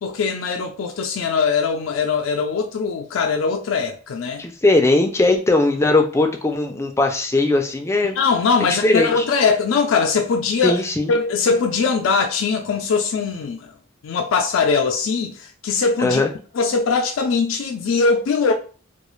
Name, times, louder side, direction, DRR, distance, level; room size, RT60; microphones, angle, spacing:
voice 1, 0.0-4.4 8.2-10.8 11.1-13.7 14.0-16.2 16.5-18.5, left 5 dB, 85° left, 0.4 m, -21 dB
voice 2, 4.4-8.2 8.6-9.3 10.6-11.1 16.0-16.3, left 2 dB, 15° left, 0.3 m, -19 dB
2.3 x 2.3 x 3.0 m
head